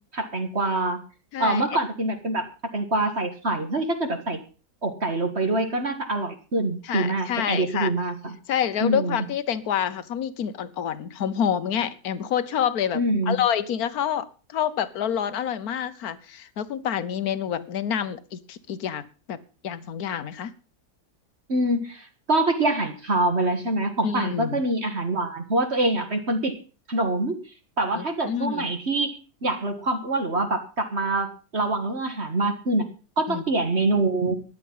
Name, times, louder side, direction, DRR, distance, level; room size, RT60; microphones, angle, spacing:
voice 1, 0.1-1.0 1.4-2.5 2.7-4.4 4.8-8.3 8.8-9.2 12.9-13.4 21.5-26.5 26.9-27.4 27.8-31.3 31.5-32.9 33.2-34.4, right 2 dB, 40° right, 6 dB, 2.0 m, -25 dB
voice 2, 1.3-1.6 6.8-7.9 8.5-13.0 13.3-19.4 19.6-20.5 24.0-24.6 27.9-28.7 33.3-33.4, left 9 dB, 65° left, 14 dB, 1.4 m, -27 dB
14.0 x 10.5 x 5.6 m, 0.36 s
omnidirectional pair, 1.7 m